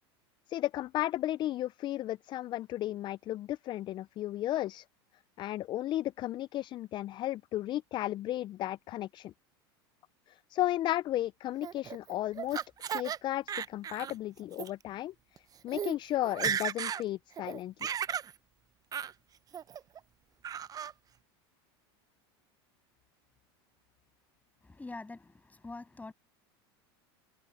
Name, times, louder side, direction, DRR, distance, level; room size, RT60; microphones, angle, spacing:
voice 1, 0.5-4.8 5.4-9.3 10.3-15.1 15.6-17.7, left 14 dB, 35° left, 0.4 m, -34 dB
Laughter, 11.6-13.2 13.5-14.1 14.5-14.7 15.4-15.5 15.7-15.9 16.2-17.0 17.4-18.3 18.9-19.1 19.5-20.0 20.4-20.9, right 8 dB, 25° right, 0.8 m, -35 dB
voice 2, 24.6-26.1, left 3 dB, 10° left, 7.6 m, -45 dB
hypercardioid pair, 105°, 14 cm